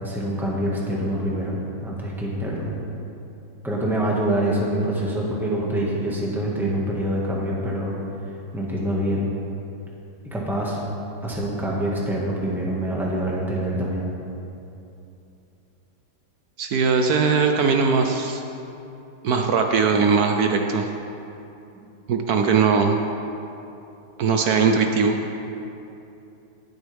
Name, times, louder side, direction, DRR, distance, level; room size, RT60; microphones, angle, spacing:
voice 1, 0.0-2.7 3.6-7.9 8.5-9.3 10.3-10.8 11.2-14.1, right 1 dB, ahead, -4 dB, 1.4 m, -25 dB
voice 2, 16.6-18.4 19.2-20.9 22.1-23.0 24.2-25.2, right 5 dB, 65° right, 4 dB, 1.0 m, -20 dB
18.5 x 8.0 x 3.5 m, 2.8 s
omnidirectional pair, 2.1 m